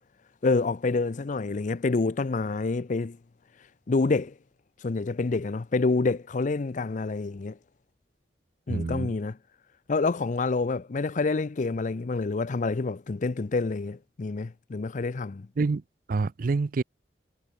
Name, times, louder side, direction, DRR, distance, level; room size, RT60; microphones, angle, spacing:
voice 1, 0.4-3.2 3.6-4.3 4.8-7.6 8.7-9.4 9.9-15.5, left 3 dB, 45° left, 0.5 m, -27 dB
voice 2, 8.7-9.1 15.6-15.8 16.1-16.8, right 4 dB, 50° right, 0.4 m, -27 dB
head